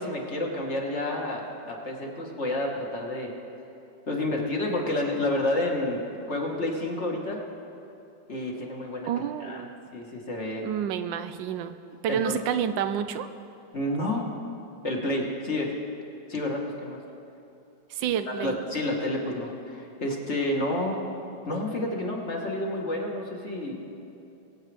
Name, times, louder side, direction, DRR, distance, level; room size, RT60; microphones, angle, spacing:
voice 1, 0.0-3.3 4.1-6.0 6.3-7.4 8.3-9.1 9.4-9.7 9.9-10.7 12.1-12.4 13.7-14.3 14.8-15.8 16.3-17.0 18.4-21.0 21.5-23.8, left 1 dB, 40° left, -1 dB, 1.6 m, -29 dB
voice 2, 9.1-9.7 10.6-11.7 12.0-13.3 17.9-18.6, right 9 dB, 80° right, 10 dB, 1.3 m, -29 dB
23.0 x 8.2 x 3.4 m, 2.8 s
omnidirectional pair, 2.0 m